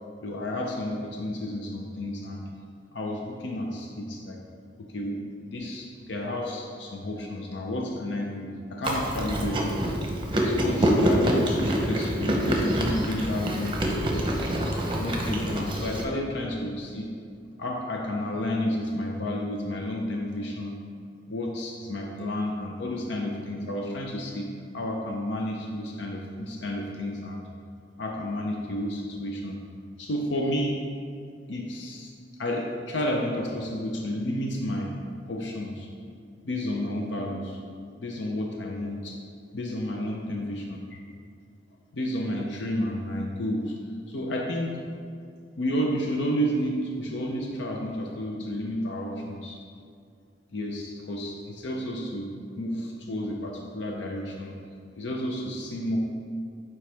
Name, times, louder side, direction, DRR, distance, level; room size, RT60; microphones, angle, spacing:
voice 1, 0.2-2.4 2.9-4.4 4.8-9.9 10.3-14.0 15.0-17.1 17.6-20.8 21.3-27.4 28.0-29.6 30.0-30.8 31.5-32.1 32.4-34.9 35.3-35.9 36.4-37.6 38.0-39.1 39.5-41.0 41.9-43.7 44.1-44.8 45.6-49.6 50.5-52.3 52.6-54.5 55.0-56.0, left 1 dB, 75° left, 0 dB, 0.6 m, -31 dB
Chewing mastication, 8.8-16.0, equal, 25° right, 0.7 m, -26 dB
7.6 x 4.7 x 3.4 m, 2.3 s
head